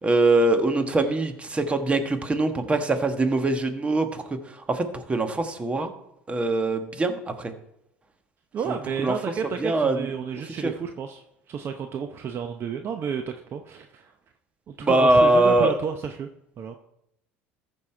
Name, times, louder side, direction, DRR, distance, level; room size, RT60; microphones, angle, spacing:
voice 1, 0.0-4.2 4.5-5.9 6.3-7.5 8.7-9.1 9.6-10.1 10.6-10.7 14.8-15.7, right 2 dB, 20° right, 7 dB, 1.4 m, -22 dB
voice 2, 8.5-14.1 14.7-16.3 16.6-16.8, right 7 dB, 45° right, 6 dB, 0.7 m, -31 dB
14.0 x 5.5 x 4.4 m, 0.80 s
supercardioid pair, 90°, 6 cm